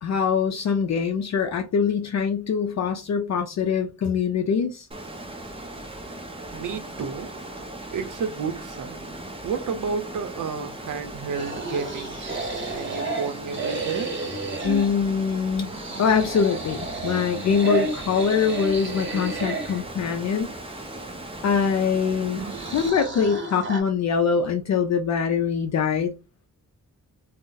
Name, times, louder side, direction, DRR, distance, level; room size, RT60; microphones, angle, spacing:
voice 1, 0.0-4.9 14.6-15.7 16.0-20.5 21.4-22.4 22.7-26.1, left 6 dB, 60° left, 0.4 m, -23 dB
Water, 4.9-22.9, right 1 dB, 20° right, 0.5 m, -38 dB
voice 2, 6.5-7.3 7.9-9.2 9.4-12.2 12.7-14.1 22.5-22.7, right 5 dB, 75° right, 0.6 m, -31 dB
sound 1, 11.4-15.0 15.7-19.8 22.4-23.8, right 3 dB, 40° right, 0.9 m, -32 dB
2.5 x 2.0 x 3.8 m
wide cardioid pair, 150°, 31 cm